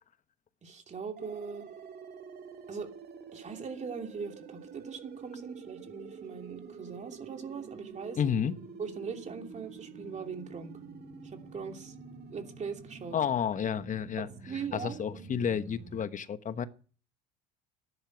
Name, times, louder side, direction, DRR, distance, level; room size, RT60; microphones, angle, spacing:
voice 1, 0.6-1.7 2.7-2.9 3.3-8.2 8.8-10.8 11.2-11.9 12.3-13.2 13.6-13.7 14.2-15.3, right 5 dB, 35° right, 2.8 m, -40 dB
sound 1, 1.2-16.1, right 5 dB, 50° right, 2.4 m, -48 dB
voice 2, 8.2-8.5 13.1-14.3 14.7-16.7, left 8 dB, 35° left, 1.2 m, -31 dB
13.0 x 11.5 x 6.0 m
supercardioid pair, 80°, 21 cm